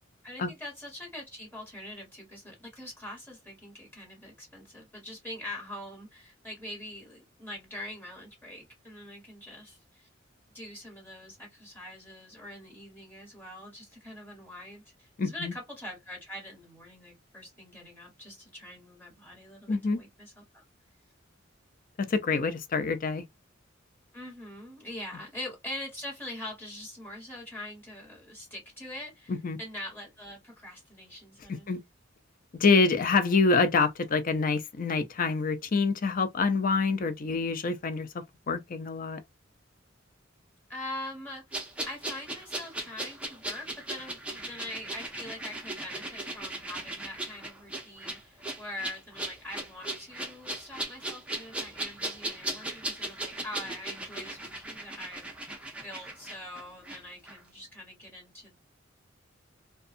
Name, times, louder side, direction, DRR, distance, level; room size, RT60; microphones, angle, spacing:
voice 1, 0.2-10.1 10.5-20.6 24.1-29.3 29.6-31.7 40.7-41.4 41.9-55.3 55.8-58.5, left 1 dB, 10° left, 1.6 m, -43 dB
voice 2, 15.2-15.5 19.7-20.0 22.0-23.2 29.3-29.6 31.7-31.8 32.6-38.1 38.5-39.2, left 4 dB, 45° left, 0.5 m, -26 dB
sound 1, 41.5-57.0 57.3-57.4, right 1 dB, 5° right, 0.6 m, -38 dB
2.6 x 2.3 x 2.5 m
head